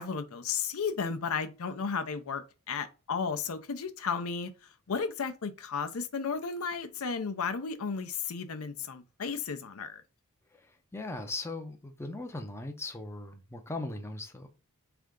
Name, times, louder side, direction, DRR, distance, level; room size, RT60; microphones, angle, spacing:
voice 1, 0.0-4.5 4.9-10.0, left 5 dB, 70° left, 0.6 m, -34 dB
voice 2, 10.5-14.5, left 2 dB, 10° left, 0.5 m, -39 dB
3.6 x 3.4 x 3.7 m
head